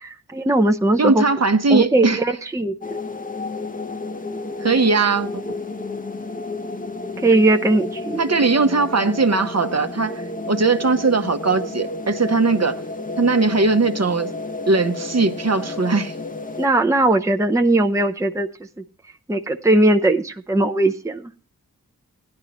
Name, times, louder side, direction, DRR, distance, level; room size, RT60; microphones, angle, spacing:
voice 1, 0.0-1.2 1.7-3.0 7.2-8.2 16.6-18.5 19.3-21.3, right 2 dB, 10° right, 0.7 m, -19 dB
voice 2, 1.0-2.2 4.6-5.4 8.2-12.8 13.2-14.3 14.7-16.1, right 3 dB, 45° right, 0.9 m, -19 dB
sound 1, 2.8-16.7, left 2 dB, 25° left, 0.8 m, -31 dB
16.5 x 10.5 x 3.0 m
cardioid pair, 40°, 35 cm